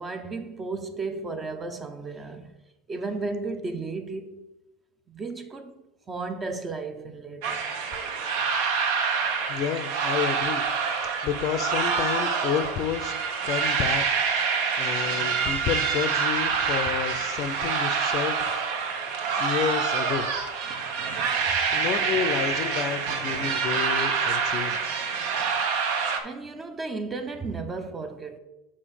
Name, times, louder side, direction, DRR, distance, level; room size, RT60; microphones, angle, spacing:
voice 1, 0.0-2.6 2.9-4.4 5.1-7.7 21.5-21.6 26.2-28.4, right 3 dB, 20° right, 0.6 m, -34 dB
sound 1, 7.4-26.2, right 5 dB, 65° right, 0.9 m, -26 dB
voice 2, 9.5-10.7 11.0-13.1 13.4-14.0 14.8-18.4 19.4-20.3 21.7-24.9, left 8 dB, 45° left, 0.5 m, -30 dB
5.0 x 4.2 x 5.7 m
supercardioid pair, 130°, 0 cm